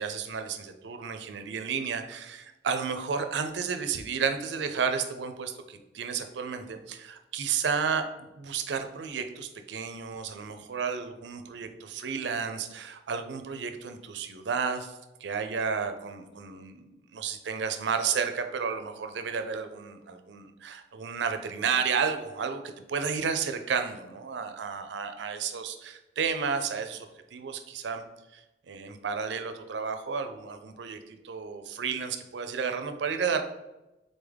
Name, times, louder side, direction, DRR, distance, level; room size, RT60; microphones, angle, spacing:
voice 1, 0.0-22.6 22.9-28.0 28.3-33.4, right 6 dB, 70° right, 7 dB, 0.4 m, -32 dB
3.9 x 3.5 x 3.4 m, 0.99 s
head